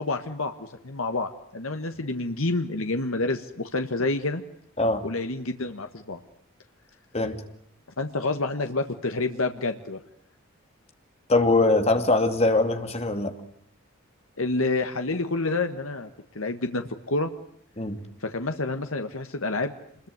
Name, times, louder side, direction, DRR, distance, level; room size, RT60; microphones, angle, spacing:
voice 1, 0.0-4.4 5.0-6.2 8.0-10.0 14.4-16.1 16.3-17.3 18.2-19.7, left 2 dB, 75° left, 7 dB, 1.6 m, -28 dB
voice 2, 11.3-13.4 17.8-18.0, left 2 dB, 30° left, 7 dB, 2.5 m, -22 dB
27.0 x 22.0 x 9.5 m, 0.67 s
head